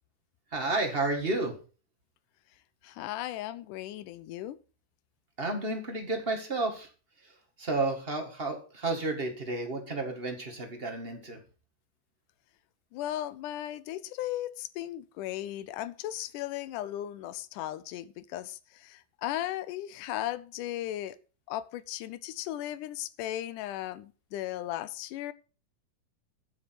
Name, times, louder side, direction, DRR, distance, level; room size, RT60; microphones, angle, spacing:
voice 1, 0.5-1.5 5.4-6.9 7.6-11.4, right 2 dB, 30° right, 1.0 m, -31 dB
voice 2, 2.8-4.6 12.9-21.2 21.5-25.3, left 13 dB, 75° left, 2.0 m, -36 dB
10.5 x 7.3 x 6.0 m
omnidirectional pair, 4.1 m